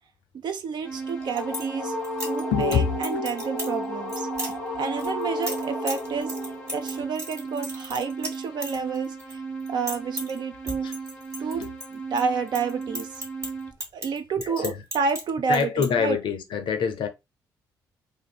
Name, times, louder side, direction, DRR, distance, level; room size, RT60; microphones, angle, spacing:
voice 1, 0.4-2.0 2.2-4.3 4.8-6.4 6.7-9.4 9.7-10.9 11.4-11.7 11.9-13.2 13.9-16.2, right 5 dB, 45° right, 0.5 m, -29 dB
sound 1, 0.8-13.7, right 4 dB, 10° left, 0.7 m, -36 dB
sound 2, 0.9-7.0, left 2 dB, 80° right, 1.1 m, -33 dB
sound 3, 1.1-1.7 2.0-2.8 3.0-3.7 4.1-4.5 5.0-9.3 9.6-10.4 10.7-12.2 12.5-15.2 15.5-15.9, equal, 30° right, 1.1 m, -35 dB
voice 2, 2.5-2.9 10.8-10.9 11.6-11.7 14.4-14.8 15.5-17.1, left 7 dB, 50° left, 0.5 m, -25 dB
2.5 x 2.5 x 2.3 m
figure-of-eight pair, 40°, 10 cm